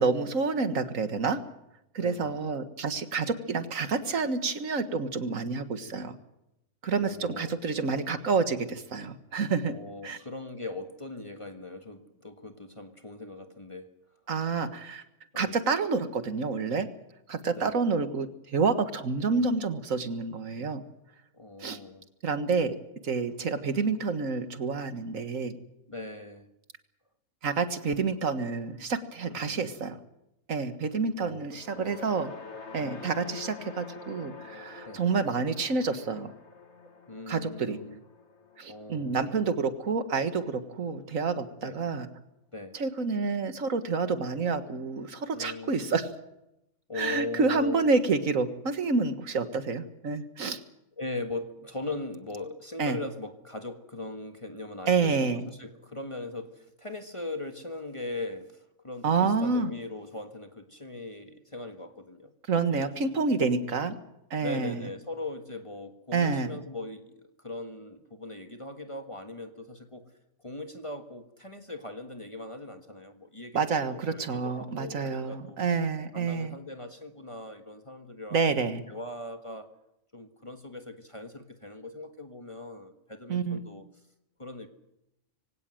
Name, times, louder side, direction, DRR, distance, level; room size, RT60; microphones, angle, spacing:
voice 1, 0.0-1.4 1.9-6.2 6.8-9.7 10.0-10.2 14.3-15.0 15.4-16.9 17.3-20.8 21.6-21.8 22.2-22.8 23.0-25.6 27.4-30.0 30.5-32.3 32.7-36.3 37.3-37.8 38.6-42.1 42.7-46.1 47.0-50.6 52.8-53.0 54.9-55.4 59.0-59.7 62.5-64.0 64.3-64.9 66.1-66.6 73.5-76.5 78.3-78.8 83.3-83.6, right 4 dB, 80° right, 10 dB, 2.0 m, -28 dB
voice 2, 2.0-2.5 7.0-7.5 9.7-13.9 15.3-15.6 17.5-17.9 21.3-22.1 25.9-26.5 29.2-29.6 31.2-32.0 32.8-33.1 34.8-35.0 37.1-38.0 38.7-39.2 41.6-41.8 42.5-42.8 45.3-45.9 46.9-47.8 51.0-62.3 62.7-62.8 63.4-63.5 64.4-70.1 70.4-75.6 76.1-78.5 78.9-79.7 80.1-83.8 84.4-84.7, left 2 dB, 25° left, 6 dB, 1.6 m, -40 dB
sound 1, 31.5-39.9, left 4 dB, 60° left, 2.2 m, -46 dB
23.0 x 17.5 x 7.8 m, 0.86 s
omnidirectional pair, 1.4 m